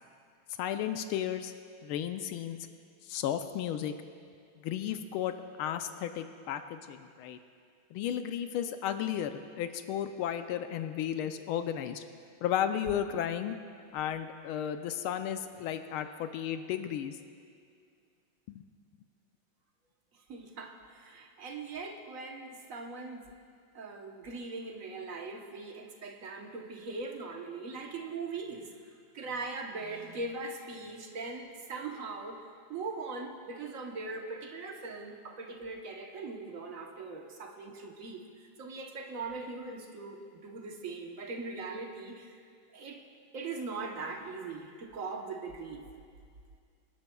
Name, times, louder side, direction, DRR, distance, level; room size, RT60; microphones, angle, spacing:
voice 1, 0.6-1.5 1.8-2.6 3.0-3.9 4.6-7.4 7.9-12.0 12.4-13.6 13.9-17.2 18.5-18.6, left 10 dB, 85° left, 8 dB, 1.4 m, -34 dB
voice 2, 20.3-23.2 23.7-28.7 29.1-32.4 32.7-38.2 38.6-42.3 42.7-43.0 43.3-45.9, right 3 dB, 50° right, 3 dB, 1.1 m, -40 dB
26.5 x 11.5 x 2.3 m, 2.2 s
omnidirectional pair, 2.3 m